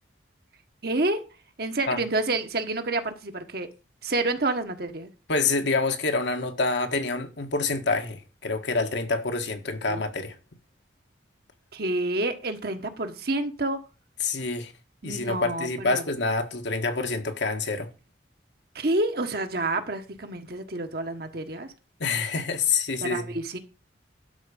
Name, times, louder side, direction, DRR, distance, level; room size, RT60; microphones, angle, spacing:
voice 1, 0.8-1.2 1.6-3.7 4.0-5.1 9.9-10.0 11.7-13.8 15.0-16.0 18.7-21.7 23.0-23.6, right 2 dB, 55° right, 1.4 m, -28 dB
voice 2, 5.3-10.3 14.2-14.7 15.0-17.9 22.0-23.3, left 3 dB, 70° left, 1.6 m, -27 dB
12.0 x 4.6 x 7.0 m
head